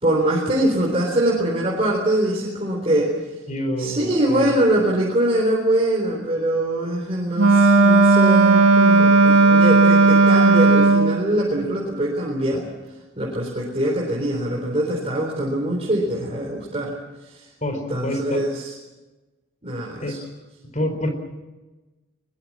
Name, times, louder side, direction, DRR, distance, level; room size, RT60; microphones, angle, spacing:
voice 1, 0.0-3.1 3.8-12.6 13.2-16.9 17.3-17.4 17.9-18.7 19.6-20.2, right 1 dB, 30° right, -2 dB, 3.9 m, -23 dB
voice 2, 3.5-4.6 17.6-18.4 20.0-20.1 20.7-21.1, equal, 35° left, 6 dB, 4.5 m, -27 dB
Wind instrument woodwind instrument, 7.4-11.2, right 3 dB, 85° right, 1.7 m, -14 dB
22.5 x 21.0 x 7.5 m, 1.2 s
head